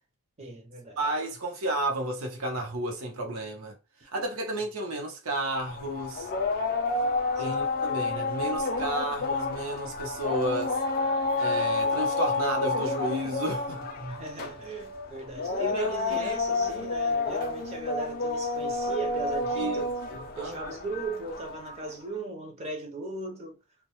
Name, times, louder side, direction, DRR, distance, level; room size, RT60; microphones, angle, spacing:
voice 1, 0.4-1.0 7.4-7.6 14.0-19.9 20.4-23.6, right 3 dB, 30° right, 0.5 m, -37 dB
voice 2, 1.0-3.7 4.1-6.3 7.4-10.8 11.4-13.9 15.6-16.9 19.5-20.7, right 1 dB, 80° right, 0.7 m, -32 dB
sound 1, 5.6-21.9, left 3 dB, 45° left, 0.3 m, -30 dB
2.1 x 2.0 x 2.8 m
head